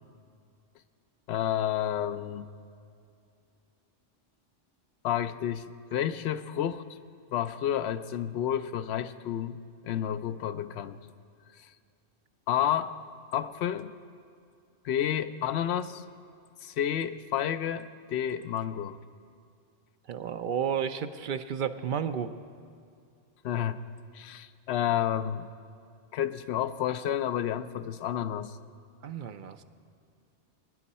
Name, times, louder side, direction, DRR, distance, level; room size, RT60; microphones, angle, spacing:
voice 1, 1.3-2.5 5.0-5.7 5.9-6.8 7.3-9.6 9.8-11.0 11.6-11.7 12.5-12.9 13.3-13.9 14.8-16.0 16.6-19.0 23.4-23.8 24.1-25.5 26.1-28.6, left 10 dB, 70° left, 11 dB, 0.8 m, -30 dB
voice 2, 20.1-22.3 29.0-29.6, right 8 dB, 55° right, 9 dB, 0.6 m, -32 dB
22.0 x 10.0 x 4.2 m, 2.5 s
omnidirectional pair, 1.2 m